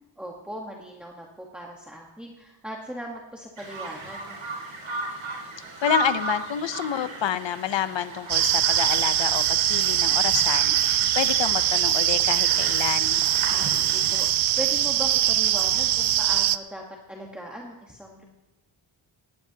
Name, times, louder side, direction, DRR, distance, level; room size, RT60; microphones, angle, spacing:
voice 1, 0.2-4.4 13.5-16.8 17.1-18.2, right 1 dB, ahead, -2 dB, 1.3 m, -39 dB
Bird vocalization bird call bird song, 3.6-14.3, right 3 dB, 90° right, 5.4 m, -35 dB
voice 2, 5.8-13.2, left 10 dB, 60° left, 12 dB, 0.8 m, -28 dB
sound 1, 8.3-16.6, right 12 dB, 70° right, 0.6 m, -22 dB
19.0 x 17.5 x 2.9 m, 1.1 s
wide cardioid pair, 175°, 50 cm